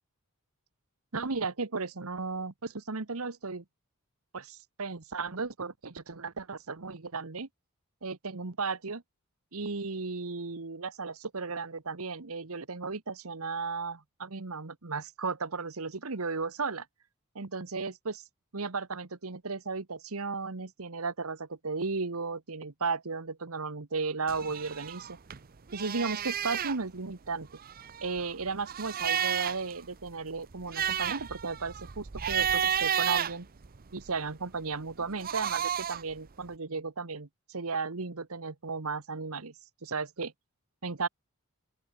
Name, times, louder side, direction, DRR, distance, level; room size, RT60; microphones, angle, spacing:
voice 1, 1.1-3.6 4.3-7.5 8.0-9.0 9.5-16.9 17.3-18.2 18.5-25.2 25.7-27.5 28.0-33.5 33.9-39.5 39.8-40.3 40.8-41.1, right 4 dB, 75° right, 1.3 m, -35 dB
sound 1, 24.3-25.4 25.7-26.8 27.5-29.7 30.1-30.2 30.5-34.1 35.0-36.1, right 9 dB, 45° right, 0.7 m, -32 dB
open air
head